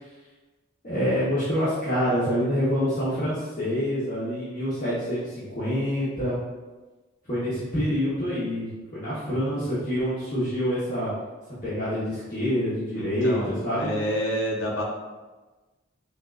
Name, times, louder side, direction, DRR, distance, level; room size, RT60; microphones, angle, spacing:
voice 1, 0.8-6.4 7.3-11.1 11.6-13.9, equal, 40° left, -12 dB, 1.1 m, -26 dB
voice 2, 12.9-14.8, equal, 65° left, -2 dB, 0.8 m, -29 dB
5.3 x 2.4 x 2.5 m, 1.2 s
head